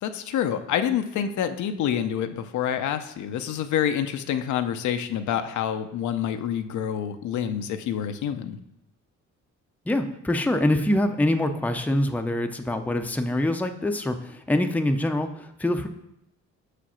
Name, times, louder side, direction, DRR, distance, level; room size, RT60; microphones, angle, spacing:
voice 1, 0.0-8.6, left 9 dB, 75° left, 8 dB, 0.7 m, -27 dB
voice 2, 9.9-15.9, left 1 dB, 5° left, 6 dB, 0.6 m, -25 dB
5.8 x 5.0 x 5.7 m, 0.84 s
cardioid pair, 90°, 30 cm